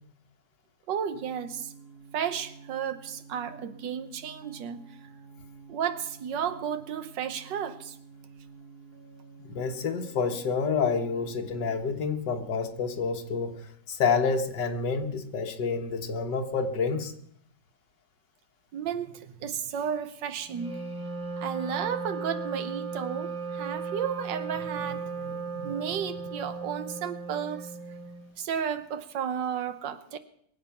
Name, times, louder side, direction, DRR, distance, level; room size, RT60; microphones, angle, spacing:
voice 1, 0.9-1.7 2.1-4.8 5.7-8.0 18.7-20.8 21.4-27.7 28.4-30.2, right 8 dB, 90° right, 12 dB, 1.6 m, -33 dB
sound 1, 1.1-11.8, right 5 dB, 65° right, 2.7 m, -50 dB
voice 2, 9.4-17.1, left 5 dB, 75° left, 6 dB, 1.9 m, -28 dB
Wind instrument woodwind instrument, 20.5-28.3, right 4 dB, 5° right, 5.0 m, -36 dB
22.5 x 8.0 x 5.8 m, 0.69 s
omnidirectional pair, 1.9 m